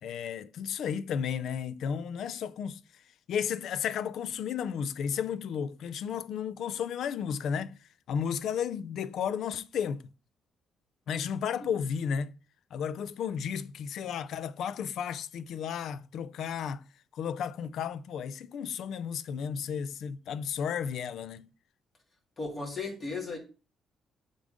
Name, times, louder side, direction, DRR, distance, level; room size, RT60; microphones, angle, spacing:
voice 1, 0.0-2.8 3.3-7.8 8.1-10.0 11.1-12.3 12.7-16.8 17.1-21.5, left 7 dB, 75° left, 0.4 m, -33 dB
voice 2, 22.4-23.4, left 3 dB, 35° left, 3.0 m, -35 dB
6.9 x 3.8 x 5.1 m
cardioid pair, 90°, 0 cm